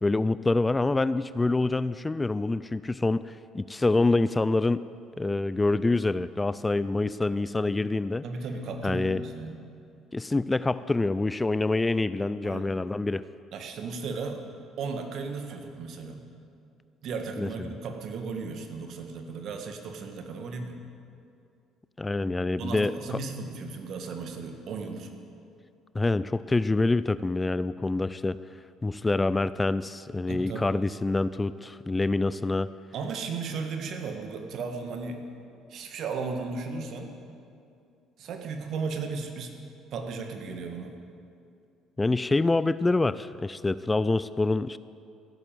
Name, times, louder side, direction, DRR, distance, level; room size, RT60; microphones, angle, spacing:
voice 1, 0.0-4.8 5.2-8.2 8.8-9.2 10.1-13.2 17.4-17.5 22.0-23.2 25.9-28.4 28.8-32.7 42.0-44.8, left 2 dB, 20° left, 16 dB, 0.4 m, -26 dB
voice 2, 8.2-9.6 12.4-12.7 13.5-14.4 14.8-16.3 17.0-20.8 22.6-25.1 30.3-30.7 32.9-35.2 35.7-37.2 38.2-39.5 39.9-40.9, right 4 dB, 60° right, 5 dB, 1.7 m, -35 dB
15.5 x 8.9 x 7.6 m, 2.5 s
hypercardioid pair, 60°, 0 cm